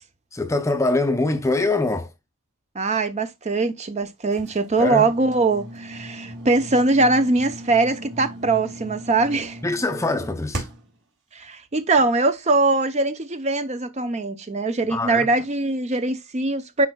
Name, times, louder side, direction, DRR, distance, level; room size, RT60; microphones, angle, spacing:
voice 1, 0.3-2.1 4.8-5.1 9.6-10.7 14.9-15.3, left 2 dB, 15° left, 0.5 m, -23 dB
voice 2, 2.7-9.6 11.3-16.9, right 3 dB, 30° right, 0.6 m, -22 dB
sound 1, 4.3-11.0, equal, 60° right, 2.6 m, -37 dB
10.5 x 4.4 x 2.3 m
head